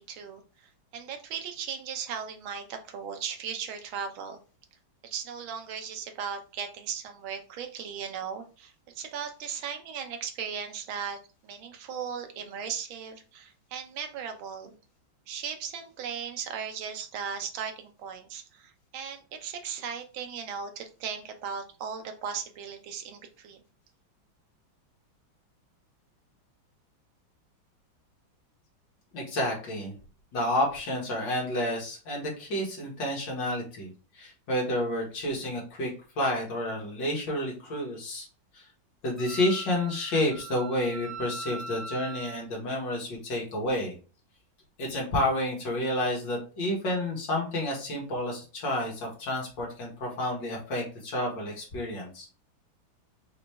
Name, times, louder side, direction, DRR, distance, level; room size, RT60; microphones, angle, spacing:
voice 1, 0.0-4.4 5.0-14.7 15.3-23.6, right 7 dB, 90° right, 6 dB, 1.6 m, -37 dB
voice 2, 29.1-29.9 30.3-33.9 34.1-35.9 36.2-38.3 38.5-38.7 39.0-43.9 44.8-52.3, left 1 dB, 65° left, -2 dB, 2.4 m, -30 dB
Wind instrument woodwind instrument, 39.2-42.4, right 3 dB, ahead, 1.1 m, -41 dB
5.2 x 3.0 x 3.4 m, 0.35 s
omnidirectional pair, 2.1 m